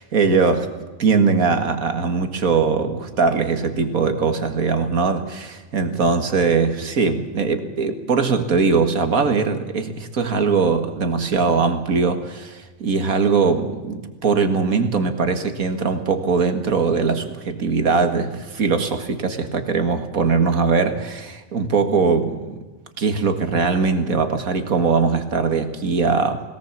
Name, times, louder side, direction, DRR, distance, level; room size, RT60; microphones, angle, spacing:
voice 1, 0.1-0.7 1.0-22.6 23.0-26.4, right 4 dB, 85° right, 7 dB, 2.3 m, -21 dB
21.0 x 18.5 x 7.4 m, 1.3 s
omnidirectional pair, 1.4 m